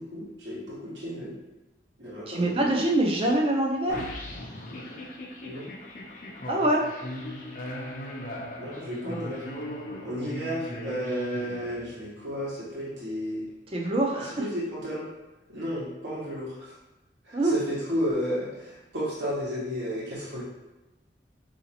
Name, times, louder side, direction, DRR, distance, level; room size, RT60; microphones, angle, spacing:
voice 1, 0.0-1.4 2.0-2.6 5.4-5.7 8.6-9.4 10.0-13.5 14.1-15.1 15.5-16.7 17.2-20.4, equal, 75° right, -8 dB, 1.2 m, -33 dB
voice 2, 2.3-4.0 6.5-6.9 9.0-9.1 13.7-14.4 17.3-17.6, right 1 dB, 30° right, 0 dB, 0.6 m, -24 dB
sound 1, 3.9-12.2, left 1 dB, 45° left, 0.6 m, -39 dB
4.9 x 2.8 x 2.8 m, 1.1 s
head